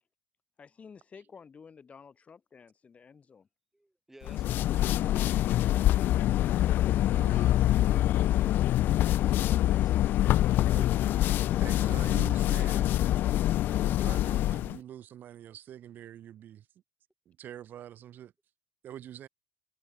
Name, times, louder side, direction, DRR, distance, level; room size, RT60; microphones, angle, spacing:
voice 1, 0.6-3.5 6.6-7.0, left 6 dB, 30° left, 2.9 m, -52 dB
voice 2, 3.7-6.2 9.0-10.7, right 1 dB, 5° right, 2.9 m, -57 dB
sound 1, 4.2-14.8, left 13 dB, 50° left, 0.4 m, -25 dB
voice 3, 7.1-7.7 9.3-9.4 10.7-10.9 11.6-13.0 13.6-16.7 17.3-18.3 18.8-19.3, right 11 dB, 45° right, 0.9 m, -45 dB
hypercardioid pair, 65°, 4 cm